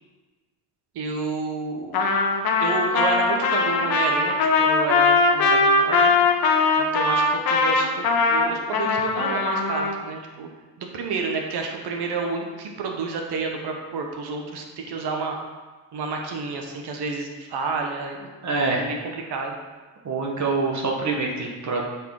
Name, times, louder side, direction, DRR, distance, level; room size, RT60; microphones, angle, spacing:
voice 1, 0.9-2.0 2.6-6.1 6.8-10.5 10.8-15.4 15.9-18.3 18.7-19.5, right 4 dB, 60° right, 2 dB, 1.6 m, -30 dB
Trumpet, 1.9-9.9, left 3 dB, 55° left, 1.2 m, -20 dB
voice 2, 18.4-18.8 20.1-21.8, right 3 dB, 40° right, -2 dB, 1.7 m, -25 dB
7.8 x 4.9 x 5.0 m, 1.3 s
cardioid pair, 100°, 43 cm